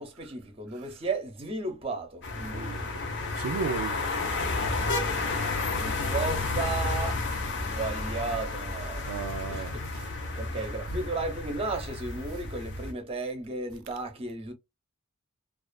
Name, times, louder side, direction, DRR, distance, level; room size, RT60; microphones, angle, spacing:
voice 1, 0.0-2.9 5.7-9.1 9.5-14.5, right 3 dB, 30° right, 0.6 m, -35 dB
sound 1, 2.2-12.9, left 3 dB, 60° left, 0.7 m, -31 dB
voice 2, 2.5-2.8 3.3-4.0 9.1-10.1, right 5 dB, 80° right, 0.4 m, -34 dB
2.4 x 2.3 x 2.3 m
head